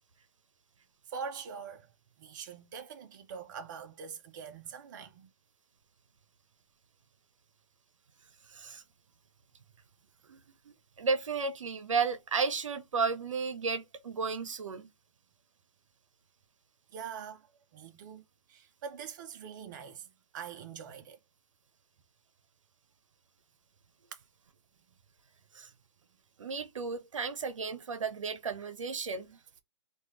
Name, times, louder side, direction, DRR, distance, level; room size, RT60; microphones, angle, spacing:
voice 1, 1.1-1.9 2.2-5.3 16.9-17.5 17.7-21.2, right 6 dB, 40° right, 0.6 m, -44 dB
voice 2, 8.5-8.8 10.3-14.9 25.5-25.7 26.4-29.4, right 5 dB, 85° right, 0.7 m, -33 dB
3.0 x 2.4 x 3.1 m
hypercardioid pair, 150°, 16 cm